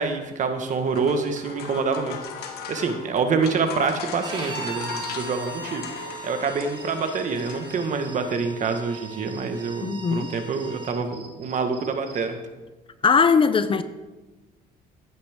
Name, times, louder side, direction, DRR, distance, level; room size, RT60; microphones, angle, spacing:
voice 1, 0.0-12.4, right 4 dB, 45° right, 1.5 m, -26 dB
sound 1, 0.5-8.2, left 7 dB, 70° left, 1.5 m, -38 dB
Bowed string instrument, 4.2-10.9, right 2 dB, 25° right, 1.8 m, -39 dB
sound 2, 6.6-12.3, right 5 dB, 70° right, 2.4 m, -47 dB
voice 2, 9.8-10.3 13.0-13.8, left 5 dB, 30° left, 0.6 m, -19 dB
15.5 x 9.0 x 3.6 m
cardioid pair, 110°, 17 cm